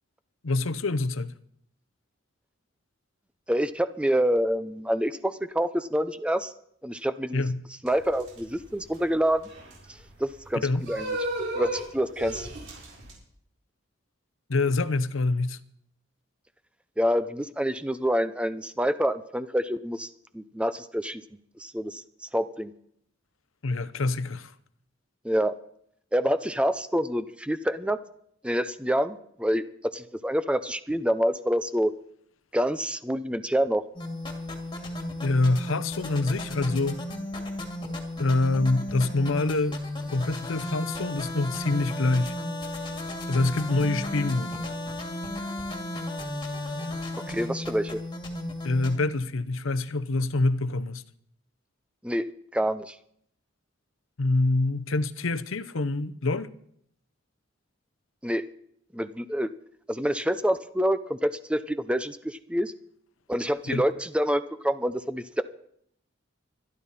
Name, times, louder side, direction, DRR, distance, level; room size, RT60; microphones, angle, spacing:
voice 1, 0.4-1.3 7.3-7.6 10.6-10.9 14.5-15.6 23.6-24.5 35.2-37.0 38.2-39.8 40.1-42.4 43.3-44.6 48.6-51.0 54.2-56.5 63.7-63.8, left 2 dB, 80° left, 0.8 m, -26 dB
voice 2, 3.5-6.5 6.8-7.4 7.8-9.5 10.2-11.1 11.6-12.5 17.0-21.2 21.6-22.0 22.3-22.7 25.2-25.5 26.1-28.0 28.4-29.6 29.9-31.9 32.5-33.8 47.3-48.0 52.0-52.9 58.2-58.5 58.9-59.5 59.9-62.7 63.3-65.4, equal, 5° right, 0.5 m, -27 dB
sound 1, 7.9-13.1, right 1 dB, 80° right, 6.8 m, -35 dB
sound 2, 33.9-48.9, left 1 dB, 25° left, 2.1 m, -34 dB
24.5 x 11.5 x 4.2 m
head